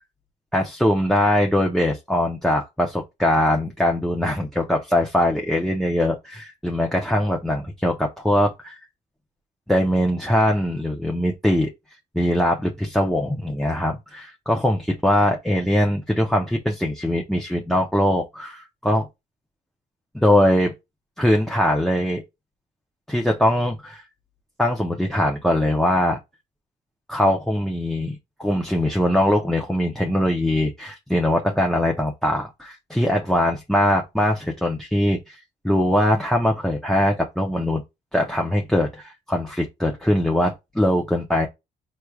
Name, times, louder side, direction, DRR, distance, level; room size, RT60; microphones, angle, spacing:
voice 1, 0.5-8.8 9.7-11.7 12.1-19.1 20.1-20.7 21.2-22.2 23.1-24.0 24.6-26.2 27.1-35.4 35.6-37.8 38.1-41.5, left 1 dB, ahead, 0.7 m, -21 dB
4.6 x 3.1 x 2.3 m
cardioid pair, 90°, 20 cm